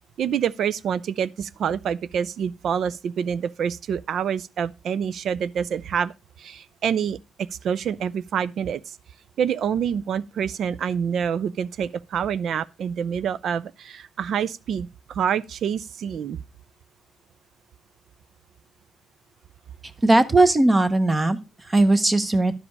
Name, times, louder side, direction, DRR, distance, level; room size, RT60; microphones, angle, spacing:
voice 1, 0.2-6.1 6.4-7.2 7.6-8.9 9.4-16.4, right 8 dB, 65° right, 0.4 m, -27 dB
voice 2, 20.0-22.5, right 2 dB, 20° right, 0.9 m, -19 dB
11.0 x 5.1 x 4.6 m
cardioid pair, 130°, 0 cm